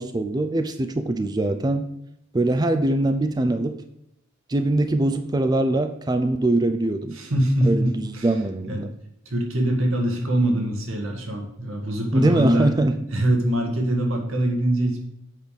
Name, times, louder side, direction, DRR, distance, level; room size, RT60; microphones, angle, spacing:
voice 1, 0.0-1.9 2.3-3.8 4.5-7.2 7.6-8.9 12.1-12.9, right 1 dB, 20° right, 8 dB, 0.4 m, -22 dB
voice 2, 7.1-8.4 8.7-8.9 9.3-12.7 13.1-15.0, right 1 dB, 75° right, 2 dB, 1.7 m, -23 dB
8.2 x 5.3 x 6.7 m, 0.79 s
head